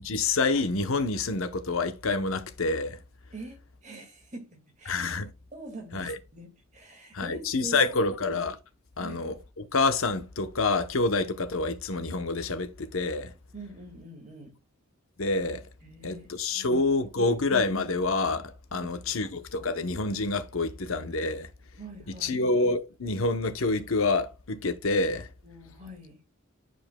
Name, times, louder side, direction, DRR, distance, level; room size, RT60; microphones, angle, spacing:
voice 1, 0.0-3.0 4.9-5.3 5.9-6.2 7.1-8.6 9.0-13.3 15.2-15.6 16.0-21.5 22.2-25.3, left 3 dB, 65° left, 0.8 m, -27 dB
voice 2, 3.3-5.1 5.5-8.1 9.0-9.2 13.5-14.5 15.8-17.4 18.7-19.3 21.8-22.4 25.4-26.2, right 1 dB, 35° right, 1.9 m, -45 dB
11.0 x 5.1 x 2.2 m
head